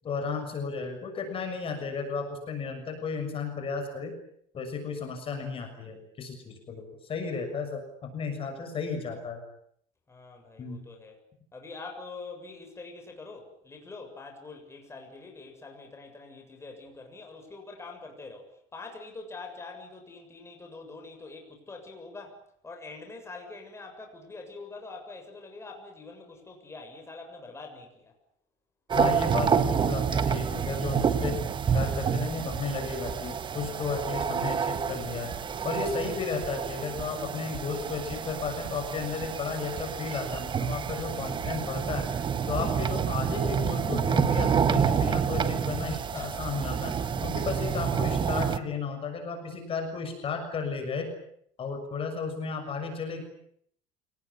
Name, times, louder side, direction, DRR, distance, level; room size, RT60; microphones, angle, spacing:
voice 1, 0.0-4.1 4.5-9.4 10.6-10.8 28.9-31.4 31.7-35.3 35.6-42.1 42.5-47.0 47.2-51.1 51.6-53.2, left 5 dB, 40° left, 4 dB, 6.8 m, -34 dB
voice 2, 10.1-11.2 11.5-28.1 46.1-46.4, left 3 dB, 20° left, 3 dB, 7.3 m, -45 dB
sound 1, 28.9-48.6, right 7 dB, 30° right, 1.5 m, -28 dB
28.5 x 19.5 x 9.8 m, 0.69 s
cardioid pair, 120°, 15 cm